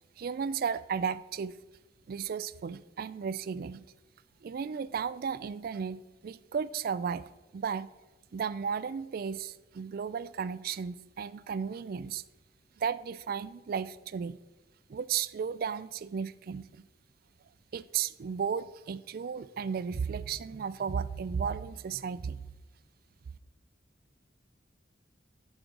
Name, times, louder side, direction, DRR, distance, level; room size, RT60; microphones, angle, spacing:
voice 1, 0.2-1.5 2.1-3.8 4.4-7.9 8.3-12.2 12.8-14.4 14.9-16.8 17.7-22.4, right 6 dB, 55° right, 0.3 m, -34 dB
14.0 x 6.2 x 3.8 m
head